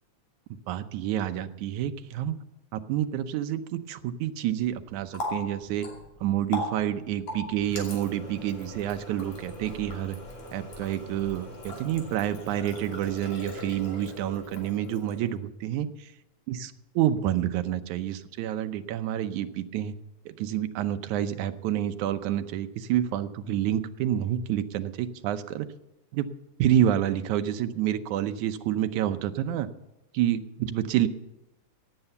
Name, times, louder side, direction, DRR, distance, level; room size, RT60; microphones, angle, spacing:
voice 1, 0.7-2.4 2.7-5.9 6.2-10.2 10.5-16.1 16.5-19.9 20.3-25.7 26.1-26.3 26.6-29.7 30.1-31.1, right 11 dB, 85° right, 10 dB, 2.2 m, -28 dB
Water tap faucet, 4.6-15.4, left 2 dB, 65° left, 4.1 m, -40 dB
16.5 x 8.9 x 6.9 m, 0.96 s
omnidirectional pair, 3.4 m